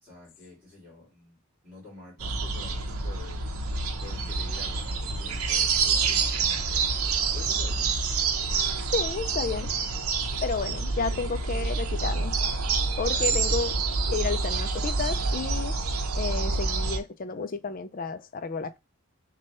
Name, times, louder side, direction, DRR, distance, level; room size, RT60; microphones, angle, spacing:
voice 1, 0.0-1.4 1.6-3.4 4.0-6.7 7.3-7.9 9.4-9.8 10.9-11.2 13.1-13.6, left 3 dB, 5° right, 2.2 m, -47 dB
sound 1, 2.2-17.0, right 4 dB, 80° right, 0.7 m, -27 dB
voice 2, 8.9-9.7 10.4-12.3 13.0-13.7 14.1-15.8 16.1-18.8, left 4 dB, 40° left, 0.4 m, -31 dB
6.1 x 2.3 x 2.9 m
head